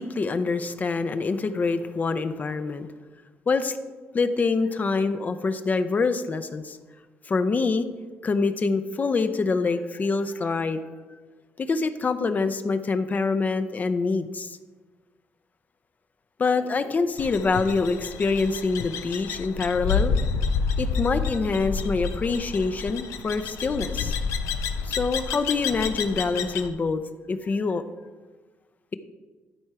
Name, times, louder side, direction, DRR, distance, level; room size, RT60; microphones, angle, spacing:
voice 1, 0.0-2.9 3.5-3.8 4.1-6.8 7.3-7.9 8.2-10.8 11.6-14.6 16.4-20.2 20.8-24.1 24.8-27.0 27.3-27.8, left 4 dB, 35° left, 10 dB, 0.5 m, -25 dB
sound 1, 17.2-26.7, left 5 dB, 85° left, 0.6 m, -29 dB
11.5 x 4.5 x 4.8 m, 1.3 s
cardioid pair, 100°, 5 cm